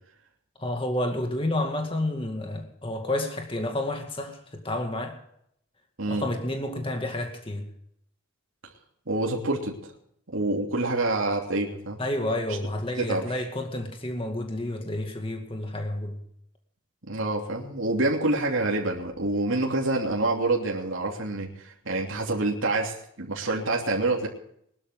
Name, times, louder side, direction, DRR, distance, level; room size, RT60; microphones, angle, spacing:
voice 1, 0.6-5.2 6.1-7.7 12.0-16.2, left 1 dB, 25° left, 4 dB, 2.1 m, -30 dB
voice 2, 9.1-9.9 10.3-12.0 13.0-13.3 17.1-24.3, right 2 dB, 70° right, -1 dB, 3.0 m, -27 dB
21.5 x 12.5 x 3.8 m, 0.69 s
head